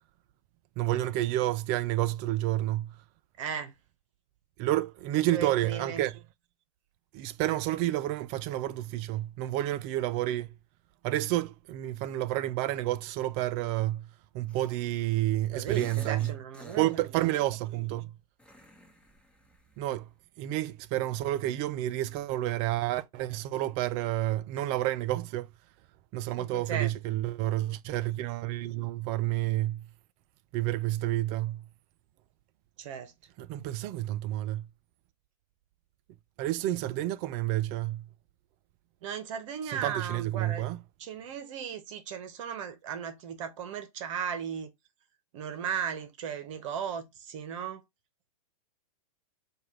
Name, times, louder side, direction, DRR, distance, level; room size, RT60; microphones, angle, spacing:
voice 1, 0.8-3.0 4.6-6.2 7.1-10.5 11.0-14.1 14.3-16.3 16.8-18.1 19.8-20.1 20.4-25.5 26.1-29.9 30.5-31.6 33.4-34.7 36.4-38.1 39.7-40.8, right 15 dB, 30° right, 0.3 m, -30 dB
voice 2, 3.4-3.7 5.3-6.0 15.5-17.3 26.4-26.9 32.8-33.1 39.0-40.7 41.0-44.7 45.3-47.8, right 7 dB, 55° right, 0.9 m, -36 dB
sound 1, 14.5-15.2 15.4-17.4 18.4-19.9, left 1 dB, 5° left, 1.0 m, -50 dB
4.7 x 2.4 x 3.2 m
hypercardioid pair, 120°, 20 cm